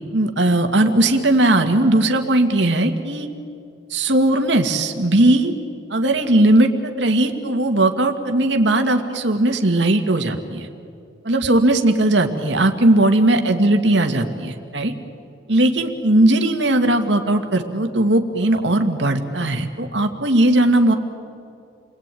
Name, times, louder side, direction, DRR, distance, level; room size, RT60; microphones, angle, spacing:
voice 1, 0.1-3.3 3.9-5.5 5.9-10.7 11.2-14.9 15.5-20.9, right 1 dB, 70° right, 5 dB, 2.1 m, -18 dB
29.5 x 21.0 x 9.3 m, 2.4 s
head